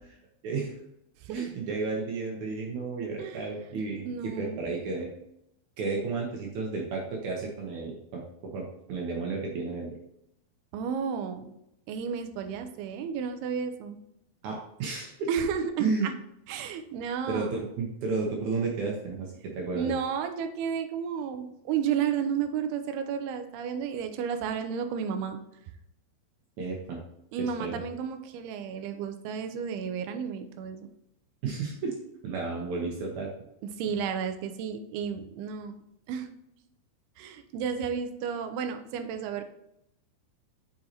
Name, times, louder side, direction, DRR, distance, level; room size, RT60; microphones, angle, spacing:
voice 1, 0.4-0.8 1.3-5.1 5.8-8.2 8.5-9.9 14.4-15.3 15.8-16.1 17.3-19.3 19.5-19.9 26.6-27.0 27.6-27.7 31.4-31.9 32.2-33.3, right 4 dB, 70° right, 0 dB, 1.9 m, -32 dB
voice 2, 4.0-4.6 10.7-11.5 11.9-14.0 15.3-16.1 16.5-17.6 19.7-25.4 27.3-30.9 33.6-35.8 36.1-36.3 37.2-39.4, right 7 dB, 85° right, 8 dB, 2.7 m, -32 dB
7.8 x 5.4 x 2.9 m, 0.80 s
omnidirectional pair, 4.5 m